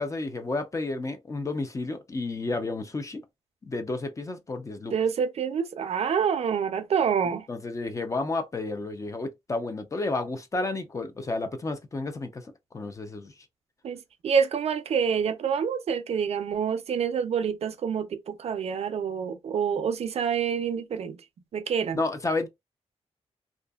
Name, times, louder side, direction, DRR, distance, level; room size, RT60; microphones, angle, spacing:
voice 1, 0.0-3.2 3.7-4.9 7.5-12.4 12.7-13.3 21.9-22.5, left 2 dB, 30° left, 0.5 m, -31 dB
voice 2, 4.9-7.5 13.8-21.2 21.5-22.0, right 7 dB, 70° right, 0.4 m, -27 dB
2.6 x 2.4 x 2.2 m
wide cardioid pair, 120°, 11 cm